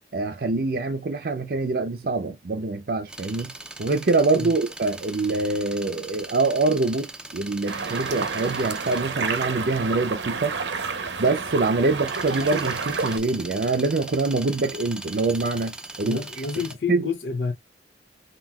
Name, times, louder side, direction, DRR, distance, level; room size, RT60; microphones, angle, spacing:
voice 1, 0.1-3.5 3.8-10.5 11.2-16.2 16.9-17.1, right 3 dB, 55° right, 0.5 m, -24 dB
sound 1, 3.1-16.7, right 2 dB, 5° right, 0.4 m, -40 dB
sound 2, 7.7-13.2, right 4 dB, 85° right, 0.8 m, -30 dB
voice 2, 16.0-17.5, left 5 dB, 80° left, 0.7 m, -29 dB
5.6 x 2.8 x 2.3 m
head